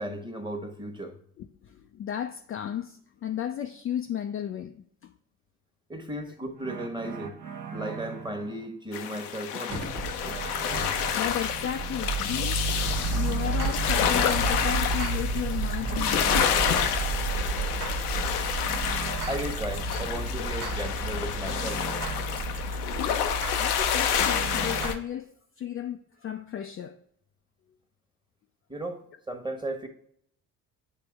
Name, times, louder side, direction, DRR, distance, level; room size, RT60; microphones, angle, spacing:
voice 1, 0.0-1.2 5.9-7.4 7.7-9.8 19.3-21.8 28.7-29.9, right 1 dB, 10° right, 1.3 m, -35 dB
voice 2, 1.4-5.1 11.2-12.6 13.1-16.9 23.0-23.1 23.6-25.3 25.6-27.0, left 10 dB, 30° left, 0.4 m, -34 dB
sound 1, 6.6-8.7 10.2-11.5 12.9-24.9, right 2 dB, 45° right, 0.9 m, -35 dB
sound 2, 8.9-24.9, left 8 dB, 85° left, 0.6 m, -29 dB
sound 3, 9.7-21.5, right 4 dB, 65° right, 1.4 m, -32 dB
8.2 x 3.4 x 3.4 m
hypercardioid pair, 50°, 45 cm